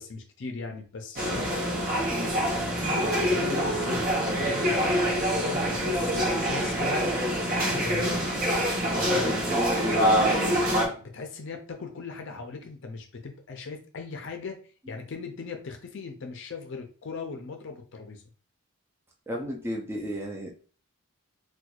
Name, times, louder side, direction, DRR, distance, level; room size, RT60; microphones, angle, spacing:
voice 1, 0.0-1.6 2.6-4.1 4.4-7.1 7.6-8.2 9.0-9.4 10.9-14.6 14.9-18.2, left 4 dB, 55° left, 4 dB, 0.5 m, -39 dB
sound 1, 1.2-10.9, equal, 40° right, 0.9 m, -25 dB
voice 2, 2.1-2.5 8.8-10.3 19.3-20.5, equal, 10° right, 0 dB, 0.4 m, -33 dB
4.2 x 2.3 x 2.4 m, 0.40 s
head